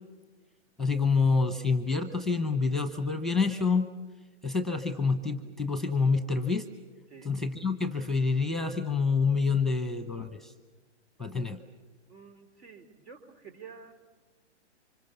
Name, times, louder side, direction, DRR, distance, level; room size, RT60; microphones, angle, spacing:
voice 1, 0.8-3.9 4.4-6.7 7.2-10.5 11.2-11.6, left 4 dB, ahead, 9 dB, 0.8 m, -27 dB
voice 2, 12.1-13.9, right 6 dB, 70° right, 9 dB, 3.6 m, -49 dB
27.5 x 25.5 x 6.9 m, 1.3 s
hypercardioid pair, 135°, 35 cm